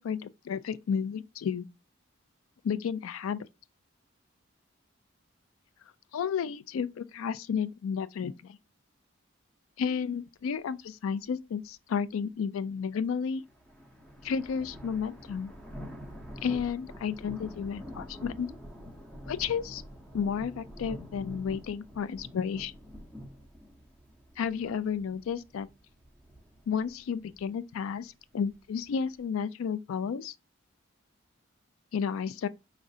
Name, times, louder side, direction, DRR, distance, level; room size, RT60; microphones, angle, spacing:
voice 1, 0.0-1.7 2.6-3.5 6.1-8.6 9.8-13.4 14.2-15.5 16.4-18.5 19.3-19.8 20.1-22.7 24.4-25.7 26.7-30.3 31.9-32.5, left 6 dB, 90° left, 0.3 m, -32 dB
sound 1, 13.3-29.2, equal, 5° left, 0.6 m, -47 dB
4.9 x 3.1 x 2.6 m
head